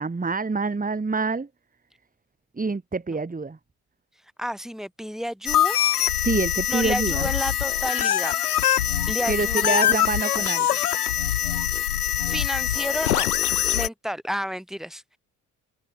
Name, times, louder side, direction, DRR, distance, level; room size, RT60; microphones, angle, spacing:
voice 1, 0.0-1.5 2.5-3.6 6.2-7.3 9.3-10.7, right 4 dB, 20° right, 2.1 m, -26 dB
voice 2, 4.4-5.8 6.7-8.3 9.1-10.1 12.3-13.3 13.7-15.2, equal, ahead, 6.4 m, -31 dB
sound 1, 5.5-13.9, left 11 dB, 90° left, 1.6 m, -23 dB
hypercardioid pair, 50°, 44 cm